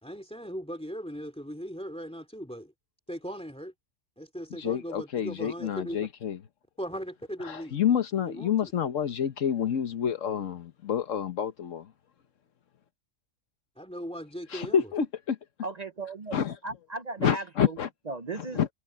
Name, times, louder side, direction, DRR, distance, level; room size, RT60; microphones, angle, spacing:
voice 1, 0.0-2.7 3.1-3.7 4.2-6.0 6.8-7.8 8.3-8.7 13.8-14.8, equal, 5° left, 2.6 m, -38 dB
voice 2, 4.6-6.4 7.4-11.9 14.5-15.4 16.3-16.5 17.2-17.9 18.4-18.7, left 8 dB, 85° left, 1.4 m, -28 dB
voice 3, 15.6-17.8 18.1-18.6, right 3 dB, 40° right, 0.8 m, -37 dB
omnidirectional pair, 1.3 m